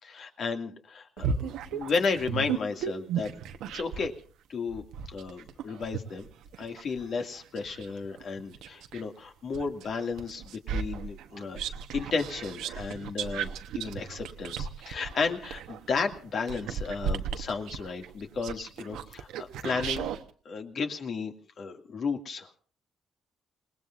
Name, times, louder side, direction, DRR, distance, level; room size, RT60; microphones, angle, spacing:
voice 1, 0.0-3.3 3.7-4.1 4.5-6.3 6.6-11.6 11.9-13.5 13.7-20.2 20.5-22.6, left 4 dB, 60° left, 5 dB, 2.3 m, -33 dB
sound 1, 1.2-4.2 4.7-9.1 9.5-20.2, right 7 dB, 90° right, 1.1 m, -35 dB
28.5 x 19.0 x 2.6 m, 0.40 s
cardioid pair, 90°, 0 cm